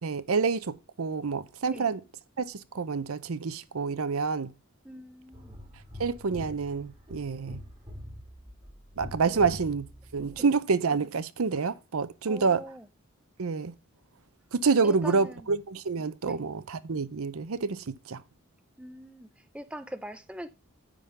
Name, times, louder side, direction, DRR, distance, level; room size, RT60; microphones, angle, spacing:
voice 1, 0.0-2.0 2.4-4.5 6.0-7.6 9.0-9.9 10.1-12.6 13.4-13.7 14.5-18.2, right 4 dB, 85° right, 0.6 m, -28 dB
voice 2, 4.8-5.6 9.2-9.6 10.4-10.5 12.3-12.9 14.8-15.4 16.2-16.4 18.8-20.5, right 1 dB, 5° right, 0.5 m, -42 dB
sound 1, 5.3-10.4, left 1 dB, 20° right, 2.7 m, -45 dB
9.8 x 3.7 x 6.7 m
head